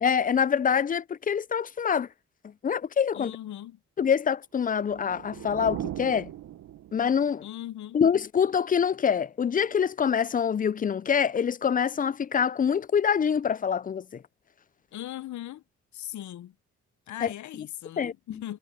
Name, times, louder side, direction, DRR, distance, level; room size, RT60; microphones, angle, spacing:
voice 1, 0.0-2.1 2.6-3.3 4.0-6.3 6.9-7.5 7.9-14.2 17.2-17.3 18.0-18.4, left 7 dB, 25° left, 0.4 m, -25 dB
voice 2, 3.1-3.8 7.4-8.0 14.9-15.6 15.9-16.5 17.1-18.6, left 13 dB, 65° left, 0.7 m, -39 dB
sound 1, 4.6-7.3, right 12 dB, 70° right, 1.0 m, -39 dB
supercardioid pair, 60°, 31 cm